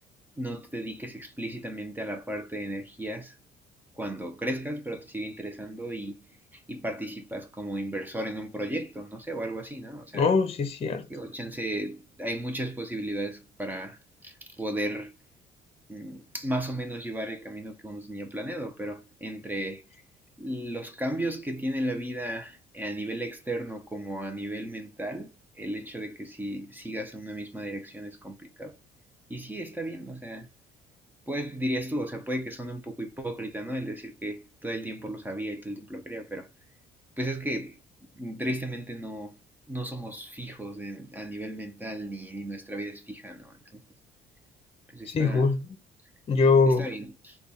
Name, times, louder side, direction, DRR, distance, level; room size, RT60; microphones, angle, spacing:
voice 1, 0.4-3.4 3.9-10.3 11.1-15.2 15.9-20.0 20.4-28.8 29.3-30.5 31.3-36.5 37.2-37.8 38.1-39.4 39.7-43.8 44.9-45.5 46.7-47.4, right 1 dB, 10° right, 0.6 m, -35 dB
voice 2, 10.1-11.1 45.1-45.7 46.3-46.9, left 4 dB, 35° left, 0.7 m, -22 dB
3.3 x 2.3 x 3.9 m
cardioid pair, 110°, 17 cm